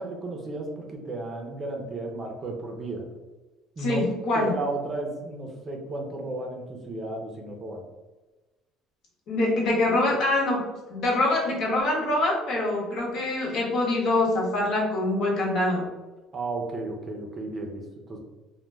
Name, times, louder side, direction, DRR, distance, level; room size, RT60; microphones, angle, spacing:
voice 1, 0.0-3.0 3.8-4.0 4.3-7.8 16.3-18.2, right 2 dB, 30° right, 2 dB, 0.5 m, -33 dB
voice 2, 3.8-4.5 9.3-10.6 10.9-15.9, left 2 dB, 60° left, -3 dB, 0.9 m, -24 dB
2.1 x 2.1 x 3.3 m, 1.2 s
cardioid pair, 120°, 0 cm